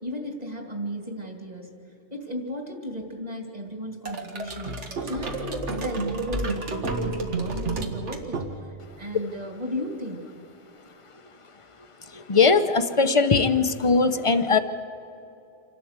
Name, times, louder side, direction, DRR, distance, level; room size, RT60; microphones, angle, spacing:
voice 1, 0.0-10.2, equal, 35° right, 2 dB, 2.7 m, -35 dB
sound 1, 4.1-8.9, right 3 dB, 70° right, 1.8 m, -30 dB
voice 2, 12.1-14.6, left 4 dB, 30° left, 10 dB, 0.7 m, -20 dB
27.5 x 12.0 x 8.1 m, 2.8 s
omnidirectional pair, 1.2 m